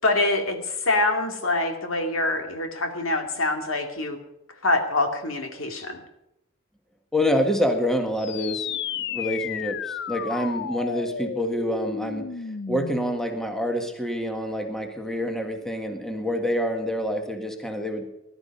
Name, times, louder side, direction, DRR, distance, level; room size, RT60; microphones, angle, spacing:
voice 1, 0.0-4.2 4.6-6.0, left 2 dB, 80° left, 4 dB, 2.5 m, -25 dB
voice 2, 7.1-12.3 12.7-18.1, equal, ahead, 4 dB, 1.7 m, -27 dB
sound 1, 8.2-13.2, left 7 dB, 60° left, 0.5 m, -33 dB
19.0 x 12.0 x 5.4 m, 0.87 s
head